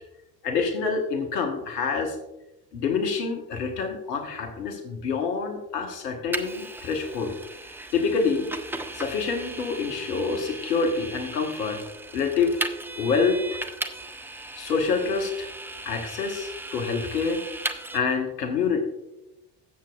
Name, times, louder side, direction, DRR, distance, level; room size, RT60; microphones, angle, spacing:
voice 1, 0.4-2.2 2.7-7.4 7.9-8.5 8.9-11.8 12.1-12.6 13.0-13.4 14.6-15.5 15.8-17.4 17.9-18.8, left 5 dB, 70° left, 4 dB, 1.3 m, -26 dB
Vehicle, 6.3-18.0, right 2 dB, 5° right, 0.5 m, -36 dB
16.0 x 7.4 x 2.4 m, 0.93 s
figure-of-eight pair, 60°, 50 cm